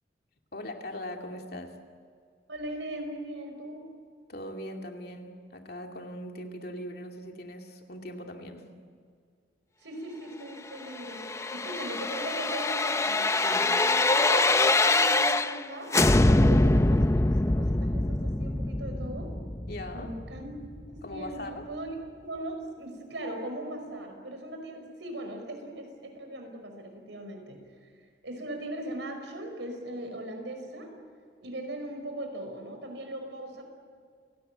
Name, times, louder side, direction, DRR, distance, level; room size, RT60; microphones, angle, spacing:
voice 1, 0.5-1.8 4.3-8.7 13.4-13.7 19.7-20.1 21.0-21.6, left 1 dB, 55° left, 3 dB, 2.5 m, -40 dB
voice 2, 2.5-3.8 9.8-11.2 11.5-13.3 14.1-15.9 16.2-19.3 19.9-20.5 20.9-21.9 22.2-27.6 28.2-30.9 31.4-33.6, right 1 dB, 85° right, 4 dB, 5.5 m, -39 dB
sound 1, 10.9-15.6 15.9-20.8 21.1-21.2, left 2 dB, 15° left, 0.6 m, -24 dB
29.0 x 18.0 x 9.0 m, 2.1 s
head